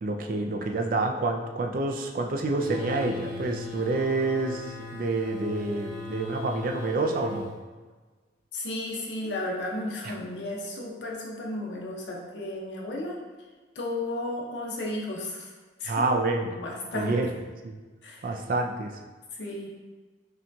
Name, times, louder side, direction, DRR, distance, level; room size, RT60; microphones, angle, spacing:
voice 1, 0.0-7.5 10.0-10.1 15.9-16.5 16.9-17.3 17.6-17.8 18.2-18.9, right 3 dB, 50° right, 3 dB, 0.4 m, -28 dB
sound 1, 2.6-7.5, left 2 dB, 40° left, 1.3 m, -38 dB
voice 2, 8.5-13.2 13.8-15.5 15.8-16.2 16.4-17.1 18.0-18.4 19.3-19.7, left 1 dB, 80° left, -2 dB, 0.8 m, -33 dB
5.6 x 2.3 x 2.7 m, 1.3 s
head